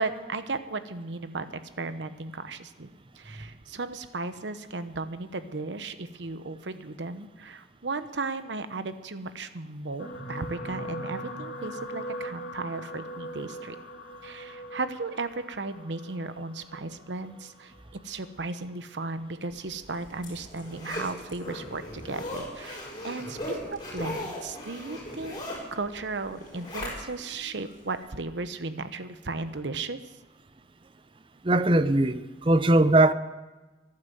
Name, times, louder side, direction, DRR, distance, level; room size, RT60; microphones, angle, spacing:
voice 1, 0.0-1.5 1.8-2.9 3.2-13.8 14.2-17.7 18.0-25.4 25.7-30.0, right 3 dB, 85° right, 0.9 m, -35 dB
sound 1, 10.0-18.4 19.2-19.4 19.7-19.8, equal, 90° left, 1.7 m, -40 dB
Zipper (clothing), 19.7-27.3 27.8-27.9, left 1 dB, 25° left, 4.8 m, -38 dB
voice 2, 31.4-33.1, right 2 dB, 30° right, 0.6 m, -20 dB
14.5 x 11.5 x 7.8 m
head